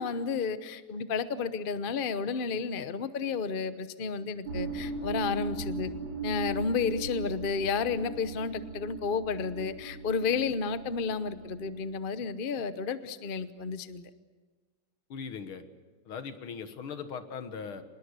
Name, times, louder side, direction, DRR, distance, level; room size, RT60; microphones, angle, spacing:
voice 1, 0.0-5.9 6.2-14.1, left 5 dB, 50° left, 12 dB, 0.6 m, -31 dB
sound 1, 4.5-12.0, right 3 dB, 60° right, 4.3 m, -39 dB
voice 2, 15.1-15.6 16.1-17.8, left 6 dB, 70° left, 9 dB, 2.3 m, -39 dB
25.0 x 21.0 x 8.2 m, 1.3 s
omnidirectional pair, 2.4 m